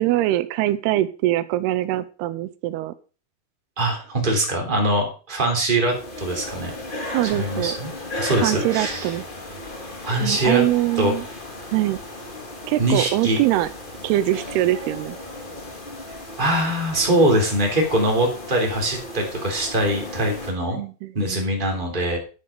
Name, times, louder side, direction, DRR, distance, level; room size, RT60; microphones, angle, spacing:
voice 1, 0.0-2.9 7.1-7.7 8.4-9.2 10.2-11.3 11.7-12.0 12.7-13.7 14.0-15.2 20.7-21.5, right 15 dB, 90° right, 14 dB, 2.7 m, -23 dB
voice 2, 3.8-6.7 7.4-7.9 8.2-9.1 10.0-10.6 11.0-11.1 12.8-13.4 16.4-20.8 21.1-22.2, right 1 dB, 15° right, 1 dB, 3.0 m, -22 dB
sound 1, 5.8-20.5, left 1 dB, 30° left, 0.8 m, -35 dB
10.5 x 10.5 x 5.0 m, 0.36 s
omnidirectional pair, 4.5 m